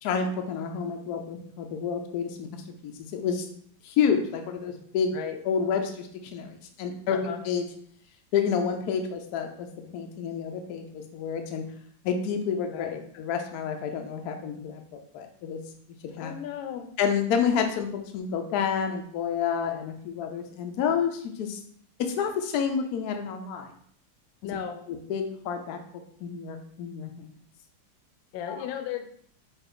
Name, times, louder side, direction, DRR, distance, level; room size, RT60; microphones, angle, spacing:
voice 1, 0.0-3.5 3.8-5.2 5.4-7.7 8.3-11.6 12.0-15.6 16.2-16.3 17.0-17.9 18.1-21.6 22.0-23.7 24.9-27.3 28.5-28.6, left 7 dB, 70° left, 4 dB, 1.0 m, -29 dB
voice 2, 7.1-7.4 12.7-13.0 16.2-16.9 24.4-24.8 28.3-29.1, left 9 dB, 85° left, 5 dB, 1.4 m, -35 dB
5.6 x 2.5 x 3.7 m, 0.62 s
omnidirectional pair, 2.1 m